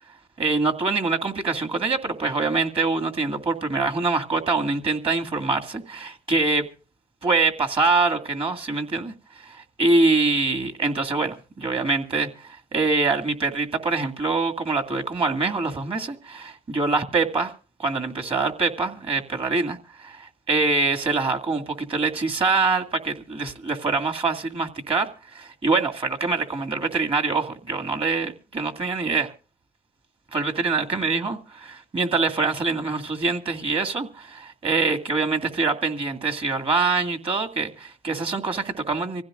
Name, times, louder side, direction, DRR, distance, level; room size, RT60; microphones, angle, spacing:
voice 1, 0.4-6.7 7.2-17.5 17.8-29.3 30.3-39.2, right 3 dB, 35° right, 2.2 m, -24 dB
25.5 x 15.5 x 2.5 m
cardioid pair, 110°, 17 cm